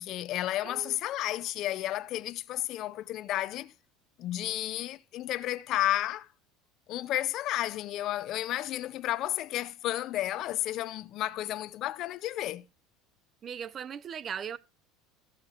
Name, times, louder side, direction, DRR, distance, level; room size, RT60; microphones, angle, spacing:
voice 1, 0.0-3.7 4.2-6.3 6.9-12.7, left 14 dB, 50° left, 0.7 m, -32 dB
voice 2, 0.6-1.0 13.4-14.6, right 8 dB, 35° right, 0.9 m, -38 dB
14.5 x 7.9 x 4.5 m
supercardioid pair, 125°, 0 cm